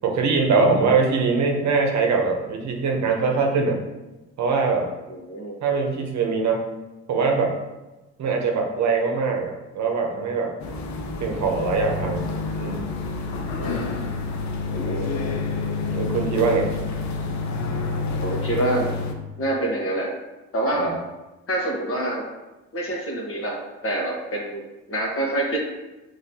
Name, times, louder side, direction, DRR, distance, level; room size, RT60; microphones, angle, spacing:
voice 1, 0.0-3.8 4.4-4.9 5.6-6.7 7.1-7.5 8.2-10.5 11.2-12.2 12.6-12.9 15.9-16.7 20.8-20.9, right 4 dB, 65° right, 2 dB, 0.9 m, -22 dB
voice 2, 5.1-5.6 13.5-13.9 14.6-15.1 18.2-19.0 19.4-20.1 20.5-21.0 21.5-22.2 22.7-24.6 24.9-25.6, right 1 dB, 45° left, -1 dB, 1.3 m, -26 dB
sound 1, 10.6-19.1, left 4 dB, 65° left, 0.7 m, -28 dB
5.8 x 3.0 x 2.8 m, 1.1 s
cardioid pair, 90°, 30 cm